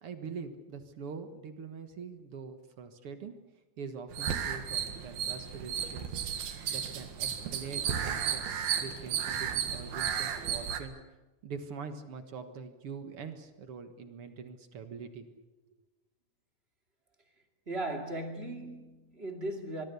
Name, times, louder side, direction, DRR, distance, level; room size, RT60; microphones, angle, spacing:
voice 1, 0.0-3.3 3.8-6.1 6.7-8.5 8.8-11.0 11.4-15.4, right 5 dB, 50° right, 8 dB, 1.9 m, -43 dB
sound 1, 4.1-10.8, right 8 dB, 80° right, 3.6 m, -34 dB
voice 2, 17.7-19.8, right 1 dB, 20° right, 4 dB, 2.1 m, -37 dB
25.0 x 22.0 x 7.0 m, 1.1 s
omnidirectional pair, 4.2 m